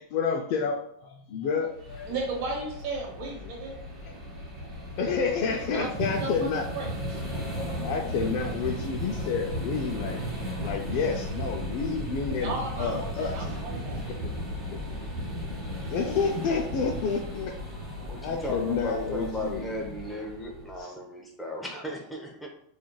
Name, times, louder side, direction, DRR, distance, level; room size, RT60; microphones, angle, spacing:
voice 1, 0.0-2.2 5.0-6.6 7.7-10.3 10.5-13.3 15.9-17.5 18.2-19.6, left 5 dB, 55° left, 1 dB, 0.3 m, -29 dB
sound 1, 1.8-20.8, equal, 25° right, 1.1 m, -35 dB
voice 2, 2.1-3.7 5.4-5.9 6.2-7.2 12.4-14.0, right 3 dB, 60° right, -1 dB, 0.8 m, -35 dB
voice 3, 18.1-22.5, equal, 5° left, 0 dB, 0.6 m, -35 dB
2.9 x 2.4 x 2.2 m, 0.71 s
supercardioid pair, 120°, 0 cm